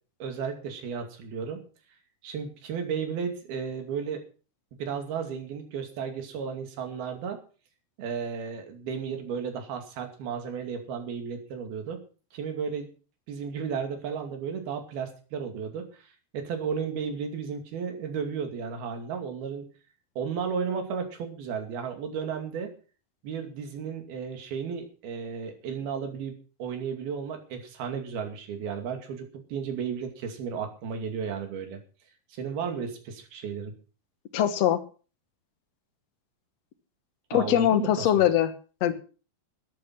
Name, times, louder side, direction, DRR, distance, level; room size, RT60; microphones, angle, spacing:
voice 1, 0.2-1.6 2.2-4.2 4.8-7.4 8.0-12.0 12.3-12.9 13.3-19.7 20.2-22.7 23.2-31.8 32.4-33.7 37.3-38.3, right 6 dB, 90° right, 5 dB, 4.4 m, -34 dB
voice 2, 34.3-34.8 37.3-38.5 38.8-38.9, left 11 dB, 60° left, 11 dB, 2.0 m, -22 dB
13.0 x 10.5 x 5.9 m, 0.37 s
omnidirectional pair, 4.2 m